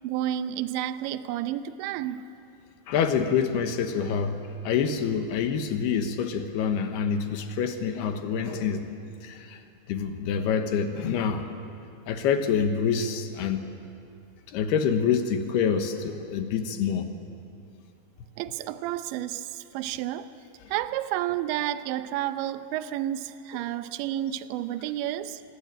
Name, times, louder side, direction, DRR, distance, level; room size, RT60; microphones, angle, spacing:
voice 1, 0.0-2.2 18.4-20.3 20.7-25.4, right 12 dB, 80° right, 11 dB, 3.0 m, -31 dB
voice 2, 2.9-8.9 9.2-9.6 9.9-11.5 12.1-13.6 14.5-17.1, left 7 dB, 70° left, 7 dB, 3.0 m, -26 dB
27.0 x 22.0 x 8.9 m, 2.5 s
omnidirectional pair, 5.4 m